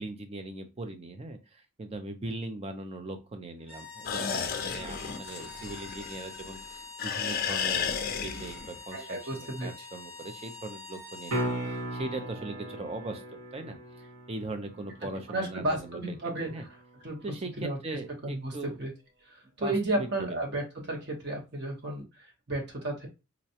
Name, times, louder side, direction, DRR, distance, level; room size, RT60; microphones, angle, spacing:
voice 1, 0.0-7.9 8.2-13.2 13.5-16.0 16.5-16.6 17.2-18.8 19.6-20.4, right 2 dB, 25° right, 7 dB, 0.5 m, -40 dB
sound 1, 3.6-11.5, left 3 dB, 10° right, 0.9 m, -46 dB
sound 2, 4.0-6.6 7.0-8.8, left 7 dB, 45° left, 0.4 m, -33 dB
voice 2, 8.9-9.9 15.3-16.7 17.0-17.2 17.6-17.8 18.2-18.5 18.8-18.9 19.3-23.1, right 2 dB, 50° right, 0 dB, 1.0 m, -33 dB
sound 3, 11.3-17.3 22.0-22.1, right 1 dB, 75° right, 1.0 m, -38 dB
3.9 x 2.2 x 2.8 m, 0.28 s
head